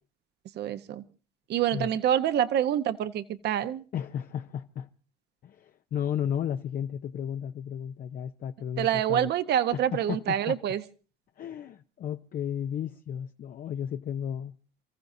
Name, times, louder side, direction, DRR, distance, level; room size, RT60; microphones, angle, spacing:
voice 1, 0.5-1.0 1.5-3.8 8.8-10.8, right 10 dB, 55° right, 1.0 m, -26 dB
voice 2, 3.9-4.9 5.4-9.3 9.7-10.2 10.5-10.6 11.4-14.6, left 9 dB, 45° left, 0.7 m, -33 dB
29.5 x 14.5 x 2.7 m
cardioid pair, 110°, 21 cm